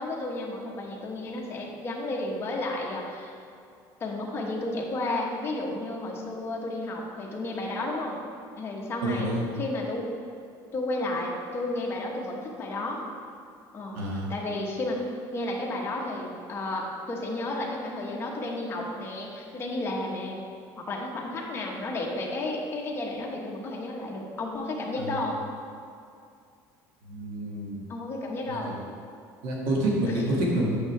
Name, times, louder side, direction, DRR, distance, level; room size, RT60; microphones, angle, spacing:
voice 1, 0.0-3.4 4.0-8.1 8.6-10.0 10.7-13.0 13.7-14.0 14.3-20.5 20.8-25.4 27.9-28.7 30.1-30.2, left 2 dB, 30° left, -2 dB, 1.2 m, -32 dB
voice 2, 9.0-9.4 14.0-14.3 27.0-27.7 28.5-28.8 29.4-30.8, right 1 dB, 90° right, -3 dB, 1.8 m, -27 dB
8.4 x 6.5 x 3.3 m, 2.3 s
cardioid pair, 135°, 9 cm